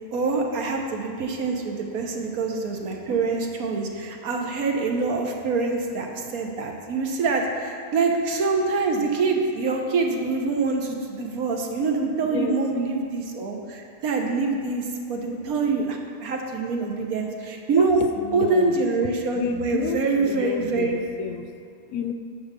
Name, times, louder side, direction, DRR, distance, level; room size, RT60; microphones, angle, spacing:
voice 1, 0.1-18.0 18.3-21.0, right 4 dB, 75° right, 2 dB, 1.4 m, -25 dB
voice 2, 12.2-12.6 17.8-18.8 19.3-21.5 21.9-22.1, left 7 dB, 70° left, 7 dB, 0.9 m, -30 dB
11.0 x 4.1 x 6.6 m, 2.3 s
omnidirectional pair, 1.6 m